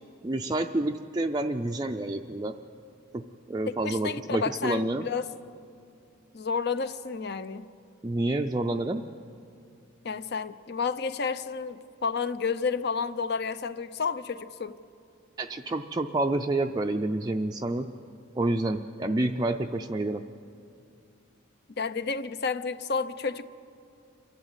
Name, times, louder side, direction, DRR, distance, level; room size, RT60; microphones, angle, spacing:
voice 1, 0.2-2.6 3.1-3.2 3.5-5.1 8.0-9.1 15.4-17.9 18.4-20.3, right 2 dB, 20° right, 0.4 m, -28 dB
voice 2, 3.7-5.3 6.3-7.7 10.0-14.8 19.0-19.2 21.8-23.4, left 5 dB, 55° left, 0.6 m, -31 dB
27.5 x 12.5 x 8.1 m
head